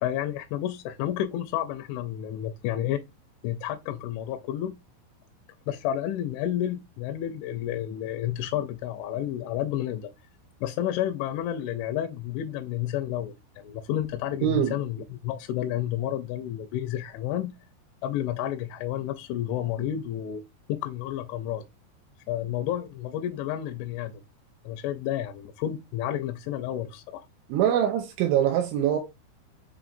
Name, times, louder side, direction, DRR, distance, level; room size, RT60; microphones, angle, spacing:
voice 1, 0.0-3.0 3.4-4.8 5.7-10.1 10.6-17.5 18.0-20.4 20.7-21.6 22.3-24.2 24.6-27.3, left 11 dB, 85° left, 2.8 m, -30 dB
voice 2, 14.4-14.7 27.5-29.0, right 10 dB, 85° right, 2.9 m, -23 dB
6.9 x 3.0 x 2.6 m
omnidirectional pair, 5.5 m